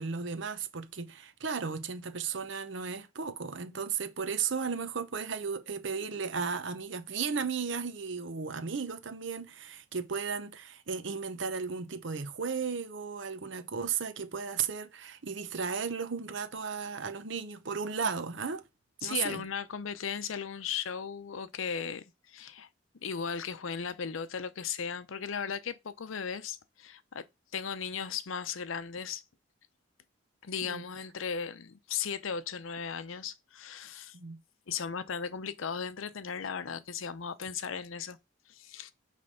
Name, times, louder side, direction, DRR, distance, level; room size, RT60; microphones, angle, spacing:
voice 1, 0.0-18.6 19.0-19.4 30.6-30.8 34.1-34.4, right 6 dB, 70° right, 0.8 m, -35 dB
voice 2, 19.0-22.7 23.0-27.2 27.5-29.2 30.4-34.2 34.7-38.2 38.5-38.9, left 6 dB, 85° left, 0.6 m, -36 dB
8.6 x 3.4 x 5.4 m
head